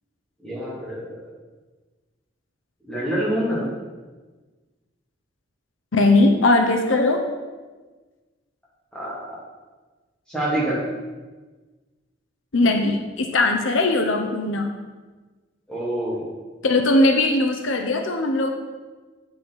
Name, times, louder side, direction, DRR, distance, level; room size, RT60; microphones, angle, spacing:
voice 1, 0.4-1.2 2.8-3.6 8.9-9.2 10.3-10.8 15.7-16.3, right 1 dB, 5° left, -7 dB, 2.8 m, -26 dB
voice 2, 5.9-7.2 12.5-14.7 16.6-18.5, left 2 dB, 80° left, 5 dB, 0.8 m, -19 dB
8.0 x 6.4 x 5.5 m, 1.3 s
head